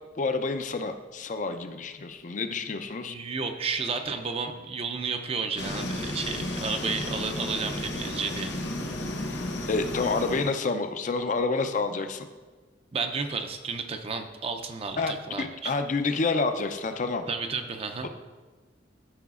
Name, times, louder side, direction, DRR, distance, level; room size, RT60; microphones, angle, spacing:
voice 1, 0.2-3.1 9.7-12.3 15.0-17.3, left 3 dB, 45° left, 8 dB, 0.5 m, -28 dB
voice 2, 3.1-8.5 12.9-15.7 17.3-18.1, right 4 dB, 30° right, 6 dB, 0.4 m, -32 dB
sound 1, 5.6-10.6, left 1 dB, 75° left, 0.9 m, -33 dB
13.0 x 4.9 x 2.4 m, 1.3 s
head